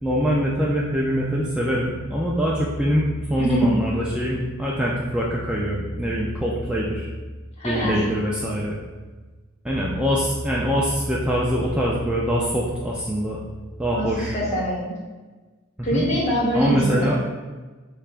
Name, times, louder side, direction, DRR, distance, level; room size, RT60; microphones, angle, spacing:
voice 1, 0.0-7.1 7.6-8.8 9.6-13.4 13.8-14.4 15.9-16.1 16.5-17.2, equal, 5° right, -5 dB, 0.3 m, -23 dB
voice 2, 3.4-3.7 7.6-8.0 13.9-14.1 14.3-15.0 15.8-17.2, equal, 30° left, -4 dB, 1.0 m, -23 dB
6.5 x 2.3 x 2.4 m, 1.3 s
head